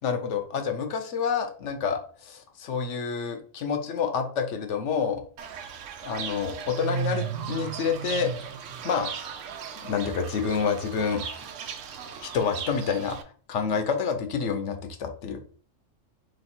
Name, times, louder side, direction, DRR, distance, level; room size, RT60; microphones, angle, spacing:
voice 1, 0.0-5.2 6.0-8.5 8.8-9.5 9.8-11.2 12.2-13.2 13.5-15.4, left 6 dB, 70° left, 7 dB, 1.0 m, -28 dB
Fowl / Bird, 5.4-13.2, right 7 dB, 75° right, 0.9 m, -36 dB
3.2 x 3.1 x 4.2 m, 0.43 s
omnidirectional pair, 1.3 m